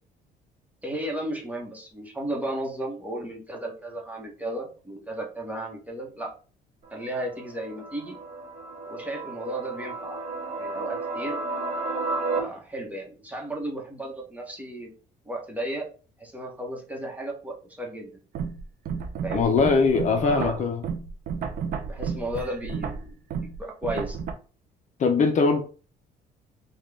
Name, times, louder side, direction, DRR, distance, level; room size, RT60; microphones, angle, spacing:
voice 1, 0.8-6.3 6.9-8.2 8.9-10.2 10.6-11.4 12.3-14.9 15.2-15.9 16.2-18.1 19.2-19.6 20.1-20.6 21.9-23.2 23.6-24.2, right 1 dB, 10° right, 1.1 m, -34 dB
sound 1, 6.9-12.4, right 3 dB, 45° right, 1.3 m, -33 dB
sound 2, 18.3-24.3, right 6 dB, 60° right, 0.6 m, -32 dB
voice 2, 19.3-20.8 25.0-25.6, left 4 dB, 45° left, 0.7 m, -21 dB
4.0 x 2.4 x 3.3 m
cardioid pair, 110°, 17 cm